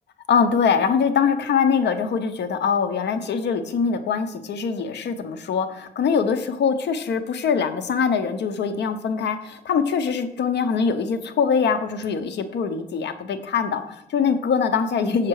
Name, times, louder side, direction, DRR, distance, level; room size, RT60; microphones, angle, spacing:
voice 1, 0.3-15.3, left 6 dB, 75° left, 9 dB, 0.9 m, -23 dB
7.4 x 6.6 x 4.8 m, 0.86 s
cardioid pair, 100°, 18 cm